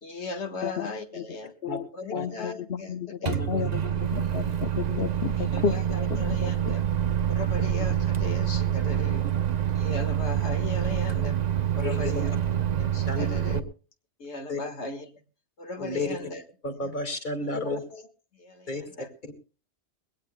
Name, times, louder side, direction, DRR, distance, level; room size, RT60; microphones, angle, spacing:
voice 1, 0.0-1.5 1.9-3.4 4.2-4.6 5.4-6.8 7.3-9.3 9.7-11.4 11.7-12.4 12.8-13.6 14.2-15.1 15.6-16.4 16.8-16.9 17.5-18.0 18.4-19.1, left 3 dB, 80° left, 5 dB, 1.9 m, -37 dB
voice 2, 2.1-5.8 6.1-6.7, left 7 dB, 65° left, 8 dB, 1.1 m, -32 dB
voice 3, 3.3-3.7 5.5-5.6 9.2-9.3 11.8-12.3 13.1-13.6 14.5-14.6 15.8-16.2 16.6-17.8 18.7-18.8 19.2-19.3, left 2 dB, 45° left, 6 dB, 2.3 m, -32 dB
Microwave oven, 3.3-13.6, right 10 dB, 45° right, 0.8 m, -26 dB
22.0 x 17.5 x 2.2 m, 0.36 s
omnidirectional pair, 1.1 m